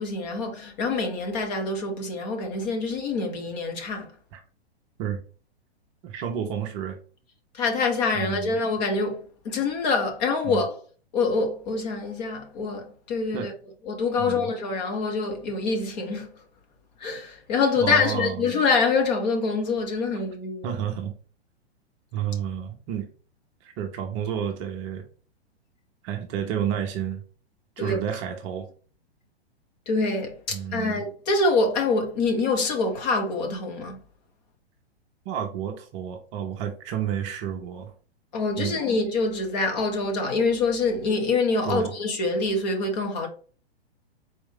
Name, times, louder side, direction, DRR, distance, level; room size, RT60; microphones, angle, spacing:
voice 1, 0.0-4.1 7.5-10.8 11.1-13.5 13.9-16.3 17.0-20.7 27.8-28.0 29.9-34.0 38.3-43.3, left 3 dB, 40° left, 1.1 m, -25 dB
voice 2, 6.0-7.0 8.1-8.5 10.4-10.6 13.3-13.5 14.2-14.5 17.8-18.4 20.6-21.2 22.1-23.1 23.6-25.0 26.0-27.2 27.8-28.7 30.5-31.0 35.3-37.9 38.6-38.8 41.6-41.9, right 9 dB, 30° right, 0.6 m, -30 dB
4.1 x 2.6 x 3.7 m
figure-of-eight pair, 110°, 32 cm